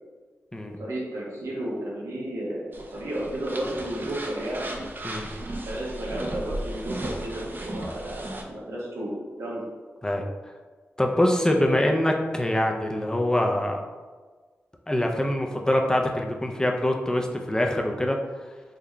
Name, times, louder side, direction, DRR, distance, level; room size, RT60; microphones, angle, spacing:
voice 1, 0.6-4.7 5.1-5.2 5.7-9.6, right 1 dB, 85° right, -5 dB, 0.9 m, -33 dB
sound 1, 2.7-8.4, right 1 dB, 40° right, 0.5 m, -36 dB
voice 2, 11.0-13.8 14.9-18.2, left 1 dB, 15° left, 2 dB, 0.5 m, -24 dB
3.8 x 3.2 x 2.2 m, 1.4 s
cardioid pair, 50°, 5 cm